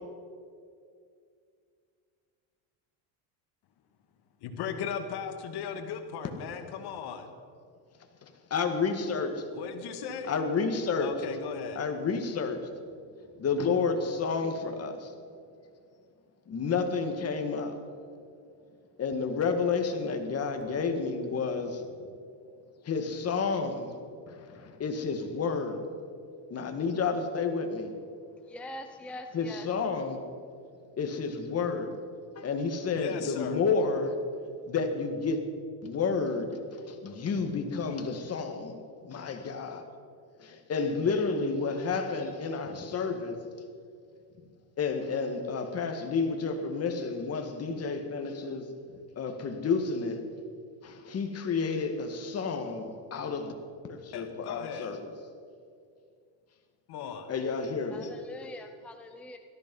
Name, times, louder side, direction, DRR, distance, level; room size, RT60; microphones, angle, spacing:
voice 1, 4.4-7.3 9.5-10.3 11.0-11.8 33.0-33.6 54.1-54.9 56.9-57.3, left 7 dB, 60° left, 7 dB, 1.8 m, -37 dB
voice 2, 8.2-9.5 10.3-11.1 11.8-12.7 13.4-15.1 16.5-17.7 19.0-21.9 22.8-24.0 24.3-25.8 26.5-27.9 29.3-30.2 31.0-31.9 32.3-34.1 34.6-35.4 35.8-38.8 39.0-39.8 40.4-43.3 44.8-48.7 49.2-50.3 50.8-53.5 53.9-55.0 57.3-58.2, left 4 dB, 35° left, 5 dB, 2.0 m, -30 dB
voice 3, 28.5-29.7 57.9-59.4, left 1 dB, 5° left, 5 dB, 0.7 m, -43 dB
17.5 x 14.0 x 5.5 m, 2.3 s
cardioid pair, 125°, 45 cm